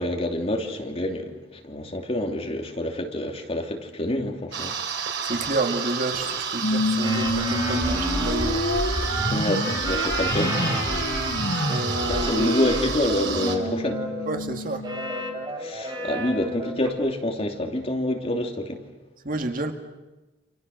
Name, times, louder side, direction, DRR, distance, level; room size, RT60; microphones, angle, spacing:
voice 1, 0.0-4.8 9.3-10.6 12.1-14.0 15.6-18.8, left 1 dB, 35° left, 2 dB, 2.9 m, -27 dB
sound 1, 4.5-13.6, right 6 dB, 85° right, 3.7 m, -31 dB
voice 2, 5.2-8.6 11.6-12.5 14.3-14.9 19.2-19.7, right 2 dB, 50° right, 5 dB, 2.2 m, -29 dB
sound 2, 6.6-15.4, left 1 dB, 70° left, 5.4 m, -28 dB
sound 3, 7.0-14.3 14.8-16.9, right 1 dB, 25° right, 3.7 m, -32 dB
29.0 x 27.0 x 6.6 m, 1.1 s
head